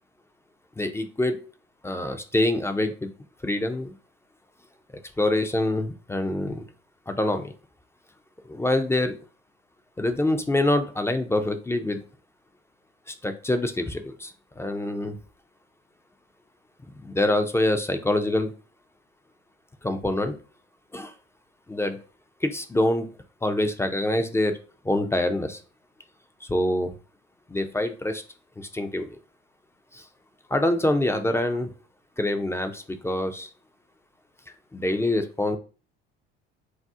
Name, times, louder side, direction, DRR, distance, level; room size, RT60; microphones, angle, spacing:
voice 1, 0.8-1.4 1.8-3.1 3.4-3.9 5.2-6.6 7.1-7.5 8.5-9.1 10.0-12.0 13.1-15.1 17.0-18.5 19.8-20.3 20.9-21.1 21.7-22.0 22.4-23.1 23.4-24.6 24.8-25.6 26.4-26.9 27.5-28.2 28.6-29.2 29.9-30.0 30.5-31.7 32.2-33.5 34.7-35.6, left 1 dB, 10° left, 7 dB, 0.3 m, -25 dB
2.7 x 2.0 x 3.5 m, 0.37 s
hypercardioid pair, 70°, 31 cm